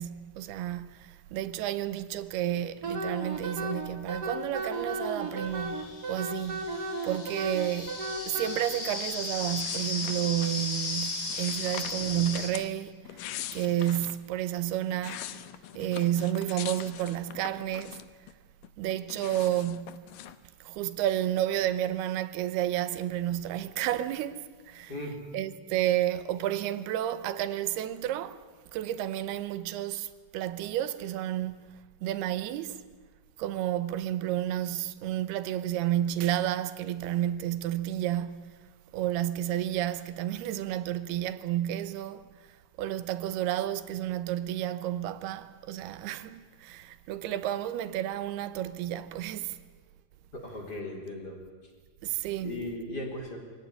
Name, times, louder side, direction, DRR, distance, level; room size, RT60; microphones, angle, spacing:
voice 1, 0.0-13.0 13.5-15.4 15.8-18.0 18.8-20.1 20.6-24.9 25.3-28.4 28.7-31.7 32.0-32.8 33.4-42.3 42.8-49.6 52.0-52.5, right 12 dB, 80° right, 2.8 m, -31 dB
Wind instrument woodwind instrument, 2.8-8.5, right 2 dB, 55° right, 1.1 m, -34 dB
sound 1, 4.0-4.1 5.0-12.5, left 3 dB, 50° left, 4.5 m, -36 dB
sound 2, 9.6-10.7 11.3-12.7 13.0-14.2 14.7-18.3 18.6-20.4, left 12 dB, 70° left, 2.2 m, -42 dB
voice 2, 50.3-51.4 52.4-53.4, left 1 dB, 25° left, 4.1 m, -37 dB
24.5 x 17.0 x 9.9 m
omnidirectional pair, 4.7 m